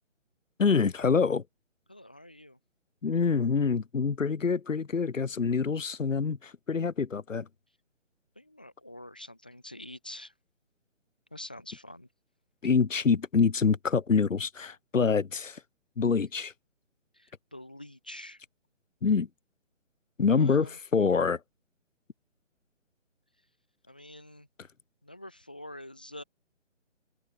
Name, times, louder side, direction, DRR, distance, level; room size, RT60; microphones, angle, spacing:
voice 1, 0.6-1.4 3.0-7.5 12.6-15.6 16.0-16.5 19.0-19.3 20.2-21.4, left 5 dB, 85° left, 1.7 m, -26 dB
voice 2, 1.9-2.6 8.4-10.3 11.3-12.1 17.1-18.4 20.3-20.7 23.9-24.5 25.0-26.2, left 1 dB, 5° left, 0.9 m, -46 dB
open air
hypercardioid pair, 175°, 38 cm